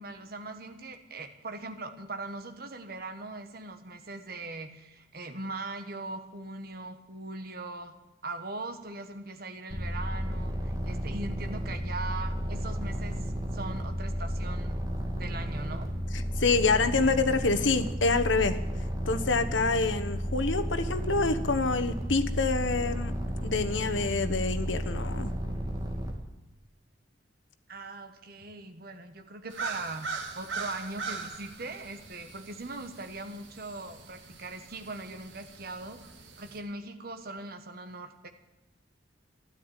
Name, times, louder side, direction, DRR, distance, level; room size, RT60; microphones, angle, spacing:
voice 1, 0.0-7.9 8.2-14.8 15.1-15.9 27.7-30.1 30.3-36.0 36.4-38.3, right 2 dB, 55° right, 6 dB, 1.5 m, -40 dB
sound 1, 9.7-26.1, equal, 20° right, 2.3 m, -33 dB
voice 2, 16.1-18.6 19.1-23.1 23.4-25.3, left 3 dB, 90° left, 8 dB, 1.2 m, -27 dB
sound 2, 29.5-36.6, right 4 dB, 80° right, 2.2 m, -41 dB
13.0 x 12.0 x 8.9 m, 0.99 s
head